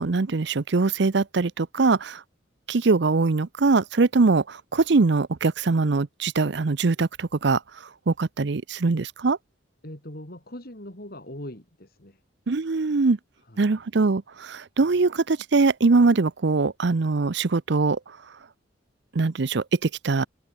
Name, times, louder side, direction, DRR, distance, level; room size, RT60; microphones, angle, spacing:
voice 1, 0.0-2.2 2.7-7.6 8.1-9.4 12.5-13.2 13.6-18.0 19.1-20.2, right 3 dB, 60° right, 0.6 m, -22 dB
voice 2, 9.8-12.2 13.5-13.7, left 1 dB, 50° left, 4.7 m, -40 dB
head